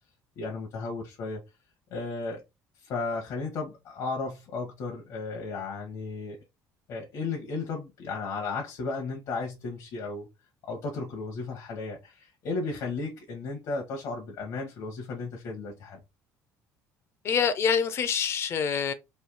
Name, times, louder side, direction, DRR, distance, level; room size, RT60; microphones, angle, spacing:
voice 1, 0.4-1.4 1.9-2.4 2.7-6.4 6.9-10.3 10.6-16.0, left 3 dB, 60° left, 1.1 m, -34 dB
voice 2, 17.2-18.9, left 6 dB, 40° left, 0.6 m, -26 dB
3.3 x 2.7 x 3.9 m
cardioid pair, 140°, 6 cm